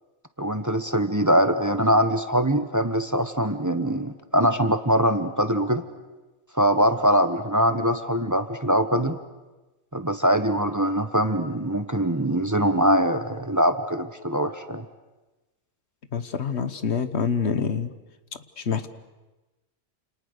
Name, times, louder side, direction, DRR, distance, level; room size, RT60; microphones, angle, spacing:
voice 1, 0.4-5.8 6.5-9.2 9.9-14.8, equal, 15° right, 9 dB, 1.2 m, -22 dB
voice 2, 16.1-17.9 18.6-18.9, left 6 dB, 75° left, 11 dB, 1.5 m, -26 dB
29.0 x 28.0 x 6.7 m, 1.1 s
omnidirectional pair, 1.2 m